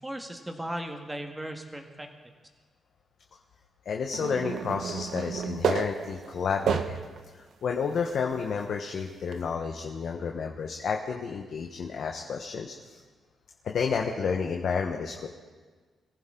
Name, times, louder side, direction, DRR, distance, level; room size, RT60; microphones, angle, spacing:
voice 1, 0.0-2.1, right 1 dB, 10° right, 3 dB, 1.8 m, -37 dB
voice 2, 3.8-7.0 7.6-13.0 13.6-15.3, left 6 dB, 60° left, 2 dB, 1.2 m, -31 dB
sound 1, 4.1-7.2 7.8-7.9 9.3-9.4, right 6 dB, 70° right, 1.0 m, -31 dB
22.5 x 15.0 x 3.9 m, 1.4 s
cardioid pair, 120°, 0 cm